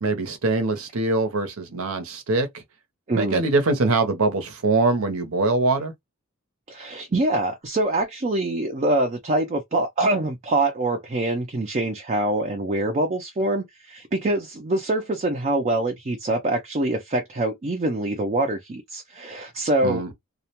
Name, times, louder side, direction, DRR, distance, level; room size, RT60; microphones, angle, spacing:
voice 1, 0.0-2.6 3.2-5.9 19.8-20.1, right 3 dB, 70° right, 0.7 m, -23 dB
voice 2, 3.1-3.4 6.7-20.0, right 2 dB, 35° right, 0.5 m, -24 dB
2.3 x 2.1 x 2.9 m
head